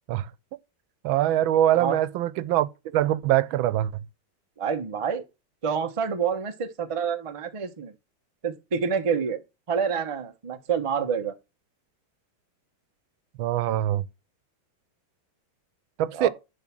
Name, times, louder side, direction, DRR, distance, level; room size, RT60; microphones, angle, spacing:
voice 1, 1.0-4.0 13.4-14.0 16.0-16.3, right 12 dB, 85° right, 1.4 m, -23 dB
voice 2, 4.6-5.2 5.6-7.9 8.4-9.4 9.7-11.3 16.1-16.3, right 6 dB, 30° right, 0.5 m, -27 dB
10.5 x 3.9 x 6.0 m
omnidirectional pair, 2.1 m